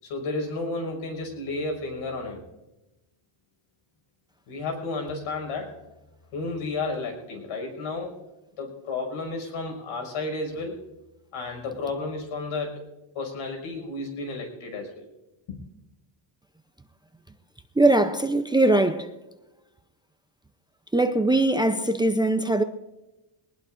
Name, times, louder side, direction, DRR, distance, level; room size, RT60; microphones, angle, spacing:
voice 1, 0.0-2.4 4.5-5.8 6.3-8.2 8.6-10.8 11.3-12.8 13.1-15.1 15.5-15.6, left 3 dB, 85° left, 5.8 m, -32 dB
voice 2, 17.8-19.1 20.9-22.6, right 2 dB, 10° right, 0.6 m, -21 dB
22.0 x 20.0 x 2.6 m
cardioid pair, 140°, 49 cm